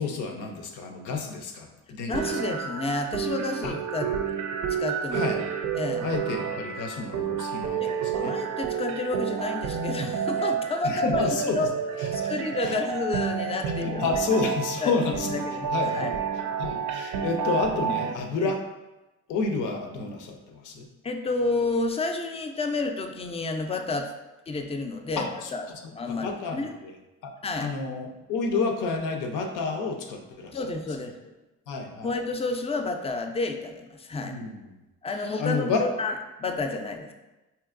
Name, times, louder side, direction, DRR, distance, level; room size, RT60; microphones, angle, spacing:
voice 1, 0.0-2.3 3.6-3.8 5.1-5.5 6.0-8.3 10.8-11.6 12.0-12.3 12.6-12.8 13.8-15.4 15.7-16.1 16.6-18.6 19.3-20.9 25.2-25.5 26.1-27.0 27.2-27.3 27.6-30.6 31.7-32.1 34.2-34.7 35.4-35.9, left 4 dB, 85° left, 4 dB, 0.6 m, -30 dB
voice 2, 2.1-4.1 4.7-5.2 5.7-6.1 7.8-11.2 11.5-11.7 12.1-14.0 14.8-14.9 15.3-16.1 18.4-18.5 21.0-24.1 24.5-26.7 27.4-27.7 30.5-31.3 32.0-34.3 35.0-36.1 36.4-37.1, left 3 dB, 20° left, 5 dB, 0.4 m, -30 dB
sound 1, 2.1-18.1, right 7 dB, 70° right, 0.5 m, -30 dB
4.5 x 2.8 x 2.5 m, 1.0 s
cardioid pair, 90°, 30 cm